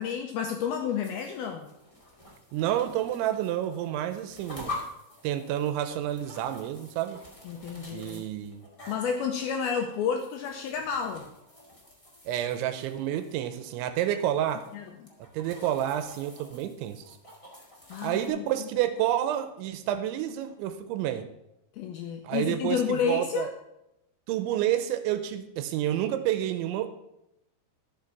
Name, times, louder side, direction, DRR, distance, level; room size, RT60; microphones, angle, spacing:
voice 1, 0.0-1.7 7.4-8.2 8.9-11.3 14.7-14.8 17.9-18.7 21.8-23.5, left 7 dB, 85° left, 4 dB, 2.2 m, -30 dB
sound 1, 0.8-18.3, left 2 dB, 55° left, 0.3 m, -47 dB
voice 2, 2.5-4.8 5.2-7.2 7.9-8.6 12.3-14.7 15.3-17.2 18.0-21.3 22.2-23.5 24.3-26.9, right 11 dB, 90° right, 9 dB, 3.1 m, -29 dB
11.5 x 6.6 x 5.9 m, 0.86 s
omnidirectional pair, 5.2 m